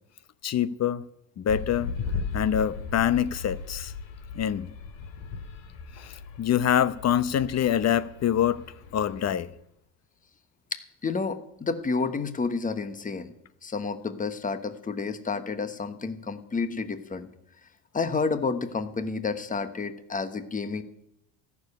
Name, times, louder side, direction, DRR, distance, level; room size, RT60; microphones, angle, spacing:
voice 1, 0.4-1.0 1.4-1.9 2.3-3.9 4.4-4.7 6.0-8.6 8.9-9.5, left 9 dB, 35° left, 0.8 m, -25 dB
sound 1, 1.5-9.5, left 5 dB, 60° left, 2.3 m, -37 dB
voice 2, 10.7-13.3 13.6-17.3 17.9-20.8, left 4 dB, 15° left, 1.2 m, -30 dB
14.5 x 7.1 x 9.7 m
supercardioid pair, 115°, 48 cm